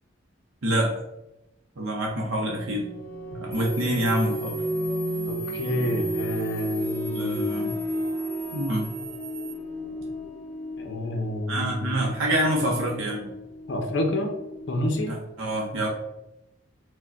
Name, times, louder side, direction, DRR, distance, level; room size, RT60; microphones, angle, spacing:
voice 1, 0.6-0.9 1.8-2.8 3.3-4.6 7.1-7.8 8.5-8.9 11.5-13.3 15.1-15.9, right 1 dB, 85° right, -1 dB, 0.7 m, -26 dB
sound 1, 2.4-14.9, equal, 15° left, 1.0 m, -33 dB
sound 2, 3.5-9.5, equal, 45° right, 1.0 m, -41 dB
voice 2, 5.3-7.4 10.8-12.1 12.6-12.7 13.7-14.3 14.7-15.1, left 1 dB, 60° left, 4 dB, 0.7 m, -29 dB
4.7 x 2.2 x 4.3 m, 0.91 s
head